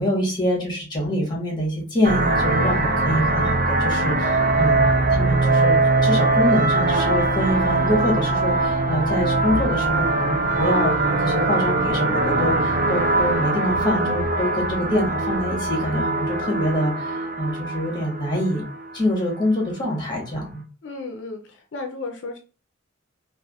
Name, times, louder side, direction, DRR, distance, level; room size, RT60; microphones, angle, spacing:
voice 1, 0.0-5.8 6.0-18.6 18.9-20.6, left 1 dB, 20° left, -2 dB, 1.2 m, -25 dB
sound 1, 2.0-19.0, right 2 dB, 45° right, 0.6 m, -21 dB
voice 2, 20.8-22.4, left 3 dB, 65° left, 3 dB, 0.4 m, -34 dB
3.3 x 2.4 x 2.3 m, 0.35 s
head